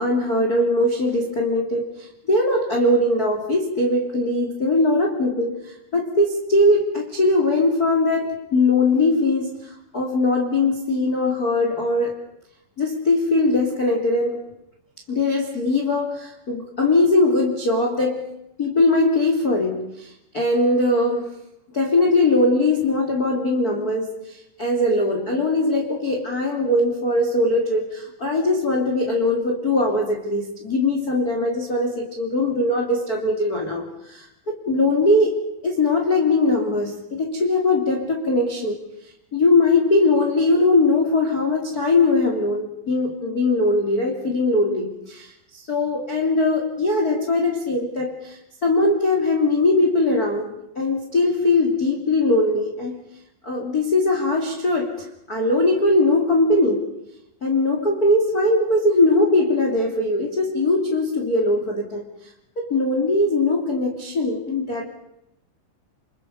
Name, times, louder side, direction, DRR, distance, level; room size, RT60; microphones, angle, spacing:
voice 1, 0.0-12.3 12.8-14.5 15.1-18.3 18.6-21.4 21.7-38.8 39.3-50.5 50.8-53.0 53.4-56.9 57.4-62.1 62.6-64.8, left 2 dB, 25° left, 1 dB, 2.2 m, -21 dB
29.0 x 27.5 x 5.5 m, 0.82 s
omnidirectional pair, 5.6 m